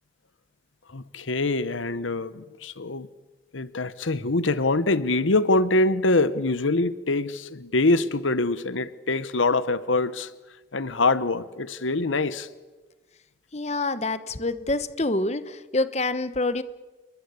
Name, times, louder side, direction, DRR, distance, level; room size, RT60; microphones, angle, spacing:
voice 1, 0.9-3.1 3.5-10.3 10.7-12.5, left 2 dB, 90° left, 1.1 m, -24 dB
voice 2, 13.5-16.6, left 2 dB, 35° left, 1.1 m, -26 dB
28.0 x 22.5 x 8.5 m
head